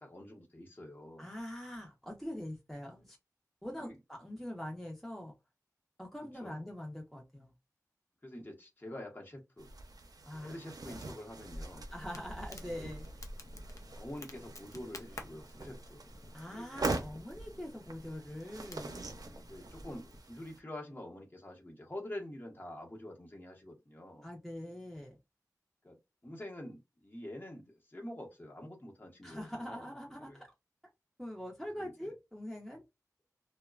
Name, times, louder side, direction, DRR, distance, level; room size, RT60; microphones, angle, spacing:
voice 1, 0.0-1.3 3.8-4.0 6.4-6.6 8.2-9.7 10.4-11.8 12.8-12.9 13.9-16.0 16.5-16.9 19.4-24.3 25.8-26.0 26.2-29.9 30.3-30.4 31.7-32.1, left 1 dB, 30° left, 0 dB, 0.9 m, -47 dB
voice 2, 1.2-3.2 3.6-5.3 6.0-7.5 10.3-10.6 10.8-11.0 11.9-13.1 16.3-19.0 24.2-25.2 29.2-30.5 31.2-32.8, left 1 dB, 5° left, 0 dB, 0.7 m, -43 dB
sound 1, 9.6-20.6, right 2 dB, 75° right, 0.5 m, -43 dB
Crackle, 11.5-20.2, left 1 dB, 55° left, 0.6 m, -51 dB
2.9 x 2.1 x 2.3 m, 0.23 s
wide cardioid pair, 65°, 6 cm